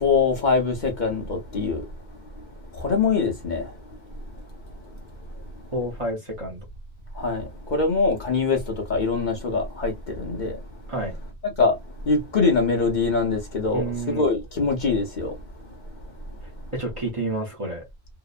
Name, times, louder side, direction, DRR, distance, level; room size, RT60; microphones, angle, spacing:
voice 1, 0.0-1.8 2.8-3.7 7.2-7.4 7.7-8.6 8.9-10.6 11.6-11.7 12.1-15.3, left 4 dB, 50° left, 0.8 m, -23 dB
voice 2, 5.7-6.6 10.9-11.2 13.7-14.2 16.7-17.8, right 2 dB, 35° right, 0.8 m, -29 dB
2.8 x 2.1 x 2.3 m
omnidirectional pair, 1.1 m